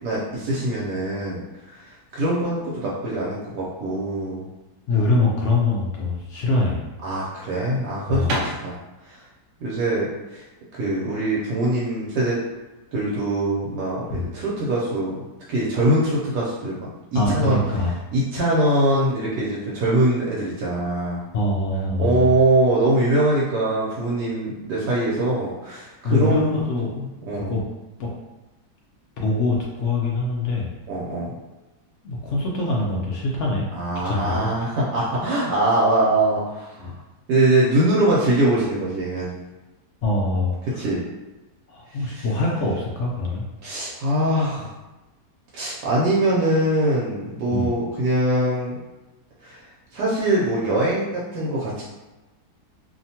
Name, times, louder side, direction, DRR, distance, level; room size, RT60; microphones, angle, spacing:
voice 1, 0.0-1.8 2.1-4.5 7.0-8.8 9.1-9.2 9.6-10.4 10.8-12.4 12.9-15.2 15.5-17.6 18.1-21.2 22.0-26.5 27.0-27.5 30.9-31.3 33.7-37.0 37.3-39.3 40.8-41.0 42.2-42.3 43.6-44.7 45.5-48.8 49.4-49.6 49.9-51.8, right 1 dB, 80° right, -6 dB, 1.2 m, -22 dB
voice 2, 4.9-6.8 8.1-8.5 14.1-14.3 17.1-17.9 21.3-22.3 26.0-26.9 27.3-27.6 28.0-28.1 29.2-30.7 32.0-33.7 34.0-34.5 36.8-36.9 40.0-40.8 41.7-43.4 47.5-47.8, left 2 dB, 70° left, -3 dB, 0.7 m, -23 dB
sound 1, 8.2-12.0, right 1 dB, 65° right, 0.7 m, -35 dB
2.9 x 2.2 x 2.7 m, 1.1 s
omnidirectional pair, 1.7 m